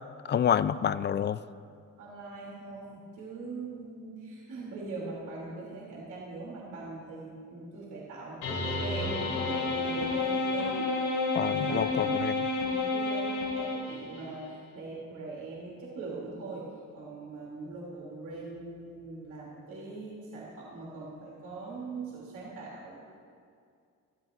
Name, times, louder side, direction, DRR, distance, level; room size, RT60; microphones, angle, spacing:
voice 1, 0.2-1.4 11.3-12.3, left 8 dB, 35° left, 16 dB, 0.4 m, -28 dB
voice 2, 2.0-12.3 12.5-16.7 16.9-23.0, right 3 dB, 85° right, -5 dB, 3.0 m, -41 dB
sound 1, 8.4-14.2, left 3 dB, 90° left, 3.2 m, -30 dB
20.0 x 13.5 x 2.6 m, 2.3 s
cardioid pair, 90°, 30 cm